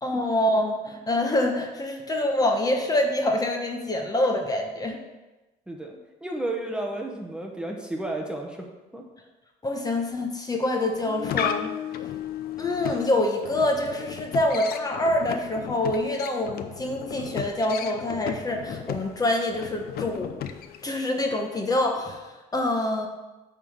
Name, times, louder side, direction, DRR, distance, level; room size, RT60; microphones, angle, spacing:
voice 1, 0.0-5.0 9.6-11.7 12.6-20.3 20.8-23.1, left 1 dB, 20° left, 2 dB, 1.1 m, -26 dB
voice 2, 5.7-8.7 8.9-9.0, right 1 dB, 5° right, 1 dB, 1.1 m, -32 dB
sound 1, 10.9-20.9, left 9 dB, 65° left, 0.6 m, -34 dB
8.9 x 3.8 x 6.4 m, 1.1 s
cardioid pair, 110°, 17 cm